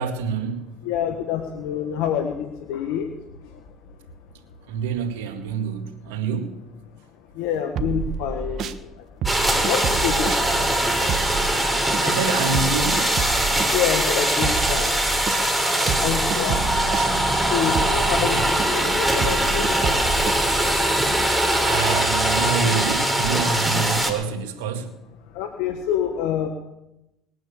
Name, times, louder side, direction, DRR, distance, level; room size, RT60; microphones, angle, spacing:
voice 1, 0.0-0.7 4.7-6.6 11.8-13.2 18.3-18.5 21.6-24.9, right 6 dB, 85° right, 2.1 m, -27 dB
voice 2, 0.8-3.1 3.4-3.6 7.3-9.1 9.6-10.5 13.7-15.6 16.0-16.9 17.5-20.3 25.3-26.5, left 9 dB, 75° left, 1.6 m, -27 dB
sound 1, 7.8-8.8 9.2-15.5 15.9-21.1, right 6 dB, 55° right, 1.3 m, -30 dB
sound 2, 9.3-24.1, right 1 dB, 5° right, 3.9 m, -22 dB
20.5 x 9.3 x 7.1 m
hypercardioid pair, 75°, 0 cm